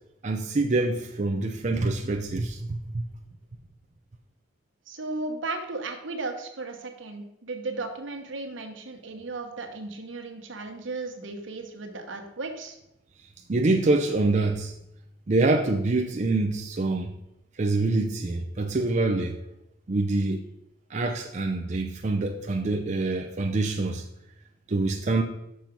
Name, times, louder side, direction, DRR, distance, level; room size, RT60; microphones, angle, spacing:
voice 1, 0.2-3.0 13.5-14.7 15.3-17.1 17.6-19.4 19.9-20.4 20.9-24.0 24.7-25.2, right 2 dB, 40° right, 0.5 m, -25 dB
voice 2, 4.9-12.8, right 3 dB, 80° right, 1.2 m, -35 dB
6.2 x 5.9 x 5.2 m
head